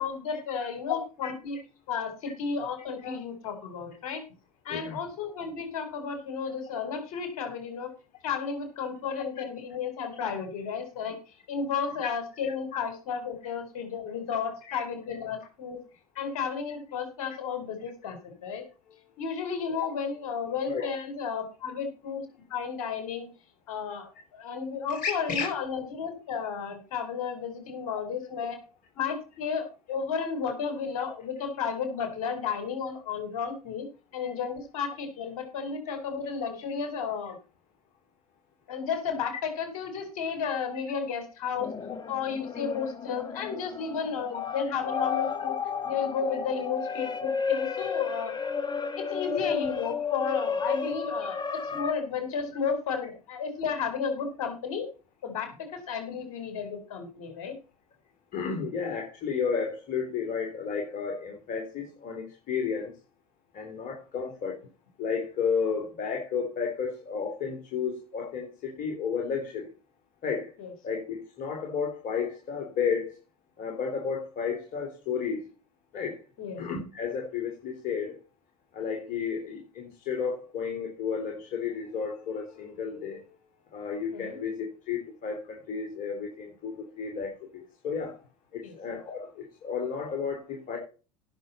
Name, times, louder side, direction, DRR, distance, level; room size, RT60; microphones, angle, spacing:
voice 1, 0.0-1.6 1.9-4.2 4.6-7.9 8.2-11.2 11.5-15.8 16.1-18.6 19.2-22.2 22.5-23.3 23.7-28.6 28.9-33.9 34.1-37.4 38.7-41.7 42.1-45.6 45.8-48.4 49.0-51.4 51.7-54.9 55.2-57.5 70.6-70.7 76.4-76.6 84.1-84.4 88.6-88.7, left 6 dB, 65° left, 6 dB, 4.4 m, -33 dB
voice 2, 25.0-25.5 34.1-34.3 58.3-62.9 63.5-64.6 65.0-69.7 70.2-70.5 70.8-73.1 73.6-75.4 75.9-76.2 76.6-78.2 78.7-83.3 83.7-88.2 88.5-90.8, left 6 dB, 45° left, 1 dB, 3.2 m, -32 dB
sound 1, 41.6-51.9, left 6 dB, 25° left, 1.6 m, -32 dB
17.0 x 6.8 x 4.3 m, 0.34 s
figure-of-eight pair, 70°, 19 cm